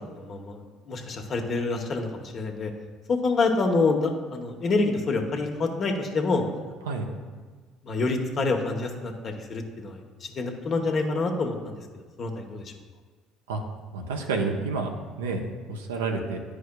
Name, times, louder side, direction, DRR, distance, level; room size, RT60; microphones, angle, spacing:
voice 1, 0.1-0.6 0.9-2.7 3.1-6.4 7.1-7.2 7.8-11.8 12.2-12.7, left 3 dB, 50° left, 2 dB, 0.9 m, -27 dB
voice 2, 13.9-14.9 15.2-16.4, right 4 dB, 90° right, 3 dB, 0.6 m, -29 dB
10.5 x 4.8 x 2.2 m, 1.4 s
hypercardioid pair, 65°, 0 cm